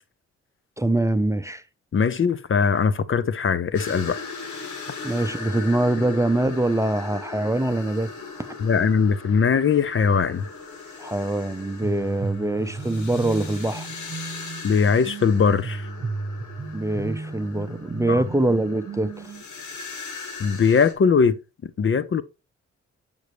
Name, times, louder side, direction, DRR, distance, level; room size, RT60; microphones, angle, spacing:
voice 1, 0.8-1.6 5.0-8.1 8.4-8.5 11.0-13.9 16.7-19.3, right 1 dB, 10° right, 0.6 m, -24 dB
voice 2, 1.9-4.2 8.6-10.5 14.6-15.9 18.1-18.2 20.4-21.4 21.8-22.2, left 6 dB, 45° left, 0.6 m, -20 dB
sound 1, 3.7-20.9, left 4 dB, 90° left, 1.9 m, -39 dB
sound 2, 11.8-19.4, right 3 dB, 40° right, 0.9 m, -35 dB
8.0 x 5.3 x 3.1 m
cardioid pair, 75°, 29 cm